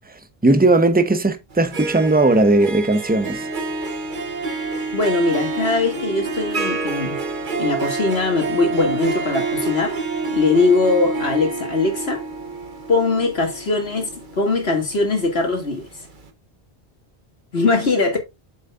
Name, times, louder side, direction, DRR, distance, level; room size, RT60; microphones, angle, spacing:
voice 1, 0.4-3.5, right 2 dB, 10° right, 0.9 m, -17 dB
Harp, 1.5-15.5, right 3 dB, 55° right, 1.3 m, -28 dB
voice 2, 4.9-7.2 7.6-9.9 10.3-12.2 12.9-15.9 17.5-18.2, left 3 dB, 85° left, 2.7 m, -21 dB
8.2 x 7.1 x 2.5 m
omnidirectional pair, 1.0 m